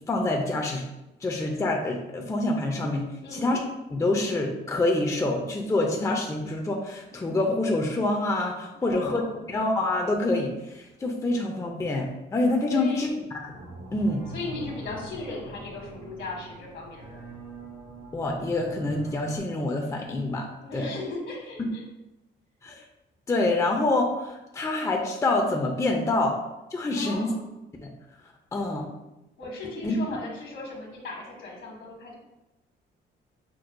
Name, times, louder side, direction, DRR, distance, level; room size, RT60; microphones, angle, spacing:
voice 1, 0.1-0.8 1.2-3.6 3.9-9.2 9.5-13.5 13.9-14.2 18.1-20.5 20.7-20.9 21.6-21.7 22.6-22.8 23.3-26.4 26.7-27.3 27.8-27.9 28.5-28.9 29.8-30.0, left 2 dB, 15° left, 1 dB, 0.5 m, -26 dB
voice 2, 3.2-3.5 8.7-9.4 12.7-13.2 14.3-17.2 20.6-21.8 27.0-27.5 29.4-32.2, left 3 dB, 70° left, -2 dB, 1.4 m, -37 dB
sound 1, 13.5-19.4, right 2 dB, 85° right, 1.5 m, -43 dB
6.0 x 2.2 x 2.5 m, 0.97 s
cardioid pair, 90°, 20 cm